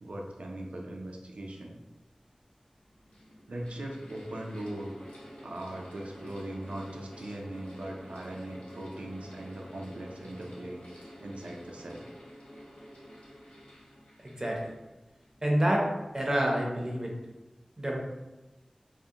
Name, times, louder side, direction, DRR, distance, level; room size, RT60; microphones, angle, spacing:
voice 1, 0.0-1.8 3.5-4.9 5.4-10.8 11.2-12.0, right 1 dB, 85° right, 0 dB, 0.4 m, -40 dB
Mechanical fan, 1.8-1.9 2.7-15.4, equal, 80° left, 0.6 m, -49 dB
voice 2, 14.2-14.7 15.4-15.9 16.1-17.1 17.8-18.0, equal, 30° right, -1 dB, 0.5 m, -28 dB
2.3 x 2.0 x 2.7 m, 1.1 s
wide cardioid pair, 60°, 2 cm